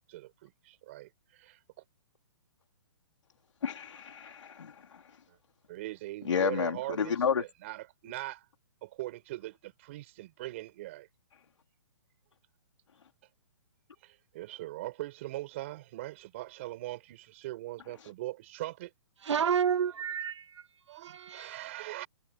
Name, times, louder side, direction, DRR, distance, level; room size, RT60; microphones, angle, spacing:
voice 1, 0.1-1.6 5.7-8.4 8.8-11.1 14.0-18.9 20.9-22.1, right 17 dB, 25° right, 5.4 m, -41 dB
voice 2, 3.6-5.0 6.3-7.4, left 7 dB, 85° left, 2.9 m, -31 dB
voice 3, 19.2-20.6 21.0-21.7, right 7 dB, 75° right, 0.9 m, -30 dB
hypercardioid pair, 175°, 15 cm